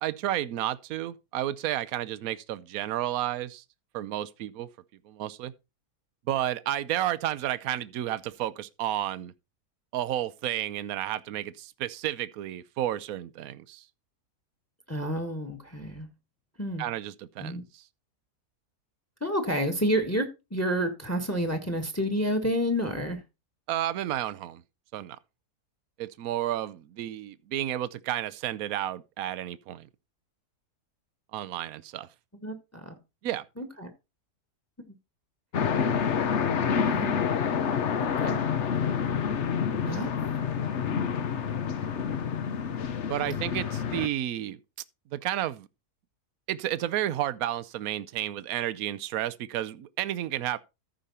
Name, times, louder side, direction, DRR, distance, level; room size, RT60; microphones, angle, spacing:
voice 1, 0.0-3.6 3.9-4.7 5.0-5.5 6.3-9.3 9.9-13.9 16.8-17.8 23.7-24.6 24.9-25.2 26.0-29.9 31.3-32.1 33.2-33.4 43.1-44.6 45.1-45.7 46.5-50.6, right 12 dB, 70° right, 1.1 m, -31 dB
voice 2, 14.9-16.1 16.6-16.8 17.4-17.6 19.2-23.2 32.4-32.5 32.8-32.9 33.6-33.9 36.8-37.2 38.0-38.4 39.8-40.1, equal, 10° left, 1.5 m, -29 dB
sound 1, 35.5-44.1, left 7 dB, 50° left, 1.1 m, -28 dB
14.0 x 5.2 x 4.2 m
omnidirectional pair, 1.7 m